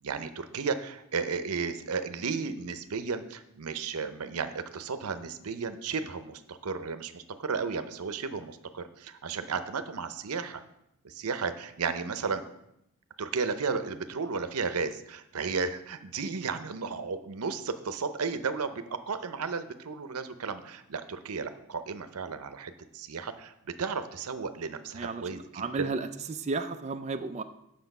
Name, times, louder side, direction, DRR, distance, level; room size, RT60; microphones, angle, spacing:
voice 1, 0.0-10.6 11.0-12.5 13.2-25.9, right 5 dB, 80° right, 10 dB, 0.7 m, -34 dB
voice 2, 24.9-27.4, right 4 dB, 30° right, 6 dB, 0.4 m, -33 dB
8.1 x 6.7 x 5.3 m, 0.82 s
head